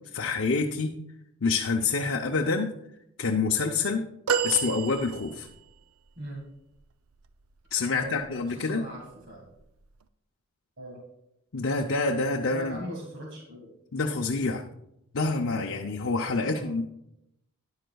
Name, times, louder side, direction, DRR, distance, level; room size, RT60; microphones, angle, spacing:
voice 1, 0.1-1.0 1.4-2.7 3.2-4.0 4.4-5.5 7.7-8.8 11.5-12.8 13.9-14.6 15.1-16.9, left 4 dB, 60° left, 1 dB, 0.6 m, -27 dB
sound 1, 4.3-5.7 8.1-8.3 9.6-9.7, right 6 dB, 80° right, 0.5 m, -29 dB
voice 2, 7.9-9.5 10.8-11.0 12.5-13.7 16.5-16.7, right 1 dB, 60° right, -1 dB, 1.8 m, -40 dB
12.5 x 10.5 x 2.3 m, 0.82 s
head